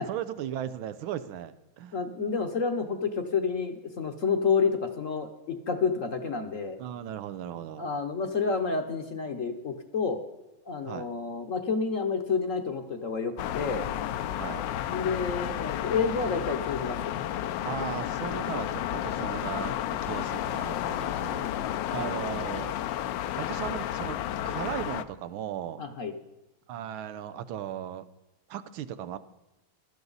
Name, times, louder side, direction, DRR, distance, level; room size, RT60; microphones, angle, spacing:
voice 1, 0.0-1.9 6.8-7.9 10.9-11.1 14.3-14.6 17.6-22.7 23.4-24.2 24.4-25.8 26.7-28.0 28.5-29.2, right 10 dB, 90° right, 11 dB, 1.6 m, -37 dB
voice 2, 1.9-6.8 7.8-10.2 10.7-13.9 14.9-17.1 21.9-22.1 25.8-26.1, left 5 dB, 50° left, 6 dB, 1.1 m, -29 dB
sound 1, 13.4-25.0, left 11 dB, 75° left, 1.2 m, -32 dB
16.5 x 12.5 x 4.0 m, 1.0 s
omnidirectional pair, 2.2 m